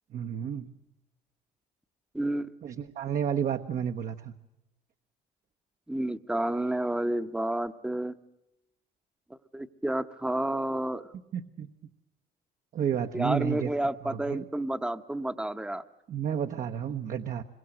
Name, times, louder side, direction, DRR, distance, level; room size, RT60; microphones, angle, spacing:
voice 1, 0.1-0.7 2.6-4.3 11.3-11.7 12.7-13.7 14.0-14.4 16.1-17.4, right 8 dB, 55° right, 5 dB, 1.1 m, -31 dB
voice 2, 2.1-2.5 5.9-8.1 9.3-11.1 13.1-15.8, right 1 dB, 5° right, 11 dB, 0.9 m, -30 dB
26.0 x 23.0 x 7.8 m, 0.88 s
cardioid pair, 110°, 17 cm